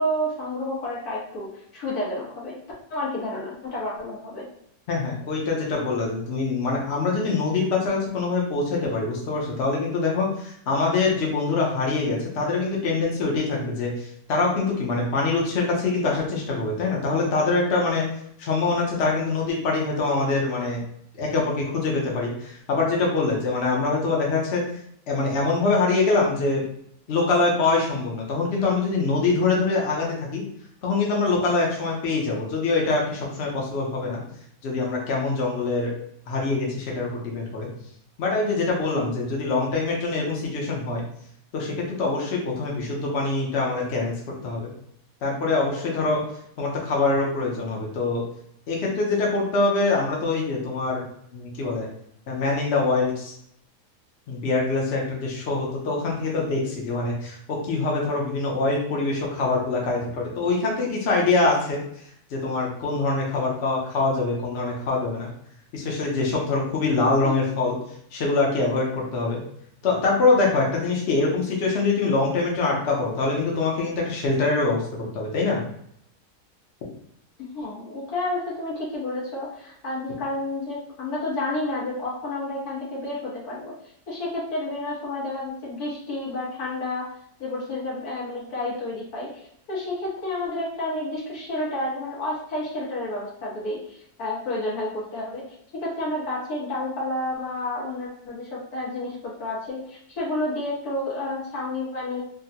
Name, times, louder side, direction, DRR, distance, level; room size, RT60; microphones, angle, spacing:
voice 1, 0.0-2.6 2.9-4.5 67.2-67.4 77.5-83.7 84.1-87.1 87.4-95.4 95.7-102.2, left 1 dB, 90° left, -5 dB, 1.5 m, -30 dB
voice 2, 4.9-18.1 18.4-20.8 21.2-24.6 25.1-26.6 27.1-30.4 30.8-34.2 34.6-35.9 36.3-37.7 38.2-41.0 41.5-44.1 44.4-44.7 45.2-46.2 46.6-48.2 48.7-51.0 51.3-51.9 52.3-53.3 54.3-61.8 62.3-65.3 65.7-67.8 68.1-69.4 69.8-74.8 75.1-75.6, left 3 dB, 55° left, -2 dB, 0.9 m, -24 dB
3.6 x 2.1 x 2.7 m, 0.69 s
omnidirectional pair, 1.5 m